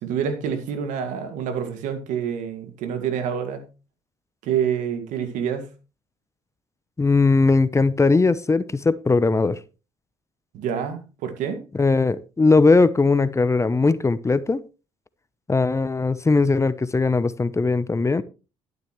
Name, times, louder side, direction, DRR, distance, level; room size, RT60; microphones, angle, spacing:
voice 1, 0.0-3.6 4.4-5.7 10.5-11.6, right 8 dB, 75° right, 8 dB, 2.1 m, -27 dB
voice 2, 7.0-9.6 11.7-14.6 15.5-18.2, left 3 dB, 20° left, 16 dB, 0.8 m, -19 dB
12.0 x 10.5 x 3.2 m, 0.31 s
hypercardioid pair, 60°, 13 cm